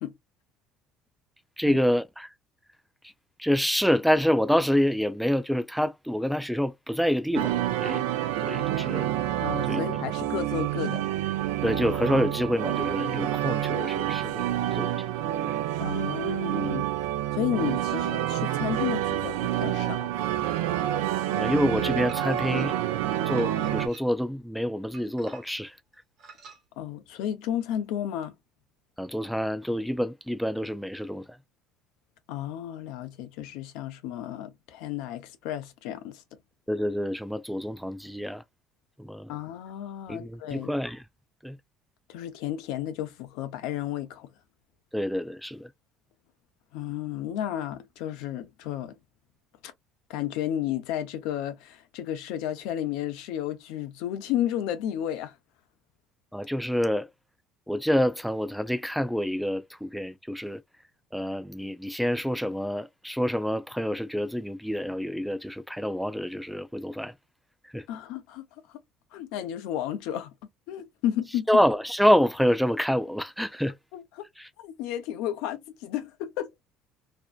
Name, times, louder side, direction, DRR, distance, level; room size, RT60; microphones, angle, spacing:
voice 1, 1.6-2.3 3.4-8.0 8.4-9.2 9.7-9.8 11.6-14.9 15.4-15.5 21.3-22.8 23.3-25.7 29.0-31.2 36.7-38.4 39.0-39.3 40.1-41.0 41.4-41.6 44.9-45.7 56.3-57.1 57.7-60.6 61.1-67.1 67.7-67.9 71.5-73.7 74.4-74.5, equal, ahead, 0.4 m, -27 dB
sound 1, 7.3-23.9, right 12 dB, 80° right, 0.3 m, -28 dB
voice 2, 9.4-11.0 15.8-16.9 17.3-20.1 26.8-28.3 32.3-36.2 39.3-40.7 42.1-44.3 46.7-49.0 49.6-49.7 50.1-55.3 67.9-68.5 69.1-70.3 70.7-71.5 73.9-74.3 74.6-76.5, left 11 dB, 75° left, 0.5 m, -32 dB
sound 2, 22.1-22.7 23.4-24.3 24.9-25.7 26.2-26.6, right 5 dB, 55° right, 1.0 m, -50 dB
2.6 x 2.1 x 2.3 m
hypercardioid pair, 65°, 0 cm